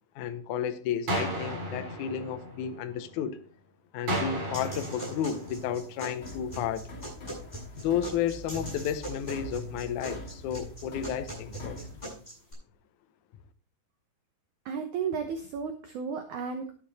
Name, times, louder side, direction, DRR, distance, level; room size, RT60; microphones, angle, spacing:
voice 1, 0.1-3.4 3.9-6.9 7.8-11.8, left 9 dB, 85° left, 1.7 m, -32 dB
sound 1, 1.1-3.1 4.1-6.1, right 1 dB, 40° right, 4.8 m, -34 dB
sound 2, 4.5-12.5, equal, 10° left, 6.7 m, -41 dB
sound 3, 6.2-12.1, left 1 dB, 30° left, 2.8 m, -44 dB
voice 2, 14.7-16.7, right 6 dB, 75° right, 1.8 m, -33 dB
11.5 x 8.8 x 4.2 m
omnidirectional pair, 4.8 m